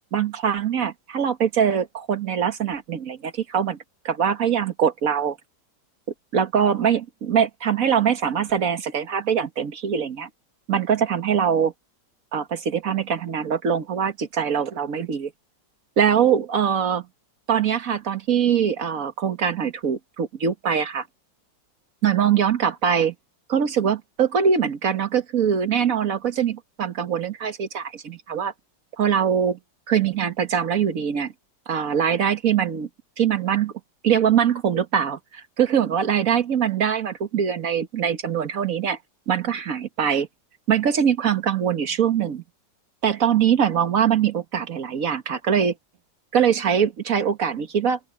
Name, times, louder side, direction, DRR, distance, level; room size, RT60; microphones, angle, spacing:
voice 1, 0.1-3.8 4.1-5.4 6.3-10.3 10.7-11.7 12.3-15.3 16.0-17.1 17.5-21.1 22.0-23.1 23.5-28.5 29.0-29.6 29.9-31.3 31.7-32.9 33.2-33.7 34.0-39.0 39.3-40.3 40.7-42.4 43.0-45.7 46.3-48.0, right 8 dB, 50° right, 1.8 m, -22 dB
open air
omnidirectional pair, 1.9 m